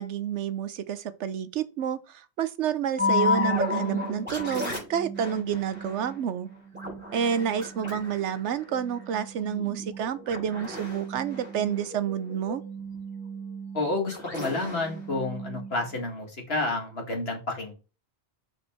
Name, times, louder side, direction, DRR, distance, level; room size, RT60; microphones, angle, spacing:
voice 1, 0.0-6.5 7.1-12.6, right 8 dB, 80° right, 1.0 m, -29 dB
sound 1, 3.0-16.0, left 2 dB, 10° right, 3.8 m, -33 dB
voice 2, 13.7-17.7, left 2 dB, 60° left, 2.1 m, -30 dB
6.7 x 4.5 x 4.4 m
omnidirectional pair, 1.2 m